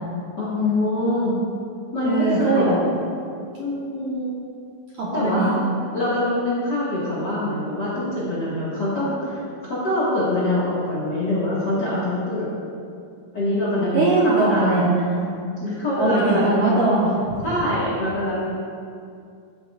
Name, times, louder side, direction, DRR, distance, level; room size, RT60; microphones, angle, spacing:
voice 1, 0.4-1.4 1.9-2.7 3.6-4.4 5.1-12.5 13.3-14.8 15.6-16.6 17.4-18.5, left 1 dB, 60° left, -8 dB, 1.0 m, -24 dB
voice 2, 2.0-2.8 5.0-5.5 13.9-15.2 16.0-17.4, right 2 dB, 70° right, -6 dB, 1.9 m, -20 dB
15.5 x 7.5 x 2.5 m, 2.4 s
omnidirectional pair, 4.8 m